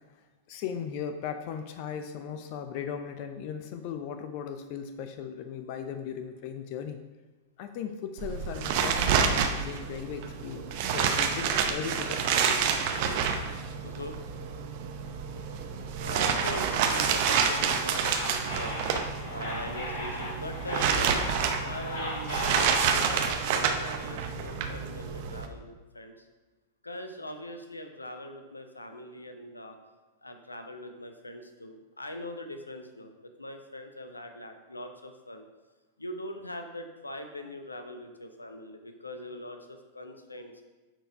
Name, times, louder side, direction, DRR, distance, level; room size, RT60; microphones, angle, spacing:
voice 1, 0.5-7.0 7.6-12.8, left 7 dB, 50° left, 8 dB, 0.6 m, -37 dB
sound 1, 8.2-25.5, right 7 dB, 50° right, 0.7 m, -28 dB
voice 2, 13.8-14.2 16.0-18.8 19.3-21.1 21.6-26.3 26.8-29.8 30.2-35.4 36.0-40.5, left 1 dB, 85° left, 6 dB, 0.7 m, -41 dB
sound 2, 16.3-23.1, left 1 dB, 65° left, 2.5 m, -36 dB
8.8 x 4.6 x 4.5 m, 1.2 s
figure-of-eight pair, 95°, 0 cm